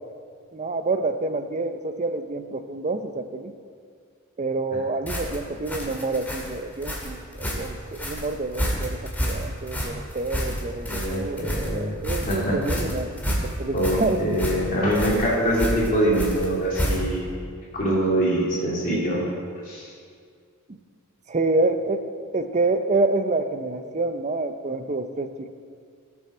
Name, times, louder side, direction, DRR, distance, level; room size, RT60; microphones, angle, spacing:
voice 1, 0.5-3.5 4.4-14.2 14.8-14.9 20.7-20.8 21.3-22.0 22.3-25.5, right 3 dB, 30° right, 9 dB, 0.6 m, -27 dB
sound 1, 5.1-17.3, equal, 10° left, 2.1 m, -29 dB
voice 2, 10.9-12.0 12.3-12.6 13.7-17.4 17.7-19.2 19.6-19.9, right 1 dB, 40° left, -5 dB, 2.7 m, -24 dB
19.5 x 7.0 x 4.3 m, 2.2 s
head